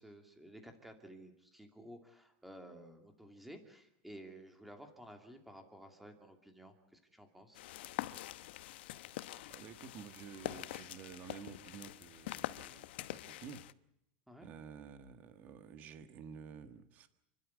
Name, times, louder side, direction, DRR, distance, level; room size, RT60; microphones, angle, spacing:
voice 1, 0.0-7.6 14.3-14.5, right 1 dB, 5° right, 5 dB, 2.5 m, -54 dB
sound 1, 7.5-13.7, left 15 dB, 85° left, 1.0 m, -45 dB
voice 2, 9.5-13.6 14.4-17.1, right 7 dB, 30° right, 10 dB, 1.5 m, -51 dB
29.5 x 12.5 x 9.4 m, 0.85 s
supercardioid pair, 180°, 6 cm